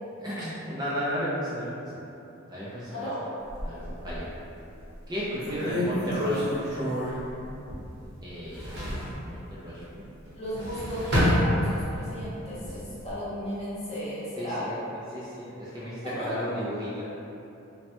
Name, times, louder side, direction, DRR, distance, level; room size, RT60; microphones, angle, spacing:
voice 1, 0.2-1.9 2.5-2.9 3.6-4.3 5.1-6.6 8.2-8.8 9.2-10.0 14.4-14.7 15.1-17.1, equal, 20° right, -9 dB, 0.3 m, -33 dB
voice 2, 2.9-3.2 10.3-14.7 15.7-15.8 16.0-16.5, equal, 30° left, -10 dB, 0.7 m, -35 dB
sound 1, 3.5-4.4 4.9-5.0 5.4-8.1 8.3-9.2 10.3-12.1 12.5-13.1, left 1 dB, 50° right, 0.9 m, -28 dB
3.2 x 2.1 x 2.8 m, 2.9 s
head